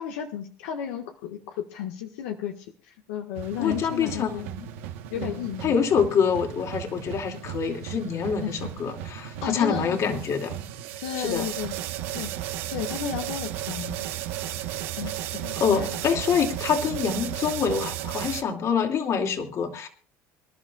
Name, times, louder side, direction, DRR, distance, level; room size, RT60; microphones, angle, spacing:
voice 1, 0.0-4.5 5.1-5.7 8.4-8.7 9.4-10.2 11.0-11.7 12.1-12.3 12.7-14.1 15.0-16.0, left 9 dB, 85° left, 3 dB, 1.7 m, -33 dB
sound 1, 3.3-18.4, right 12 dB, 90° right, 1.3 m, -35 dB
voice 2, 3.6-4.7 5.1-10.6 11.2-11.5 15.6-19.9, left 6 dB, 45° left, 4 dB, 2.6 m, -26 dB
25.5 x 11.5 x 2.5 m, 0.40 s
supercardioid pair, 105°, 7 cm